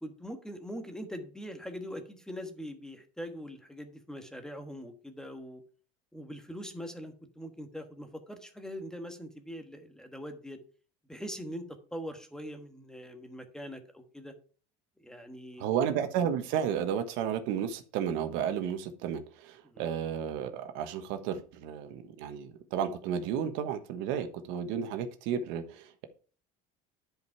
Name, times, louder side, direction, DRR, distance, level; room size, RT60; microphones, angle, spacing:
voice 1, 0.0-5.6 6.1-10.6 11.1-14.3 15.0-15.7 19.6-19.9, equal, 5° left, 6 dB, 1.4 m, -42 dB
voice 2, 15.6-26.1, right 8 dB, 75° right, 8 dB, 1.4 m, -32 dB
10.5 x 5.2 x 4.6 m, 0.40 s
cardioid pair, 130°, 20 cm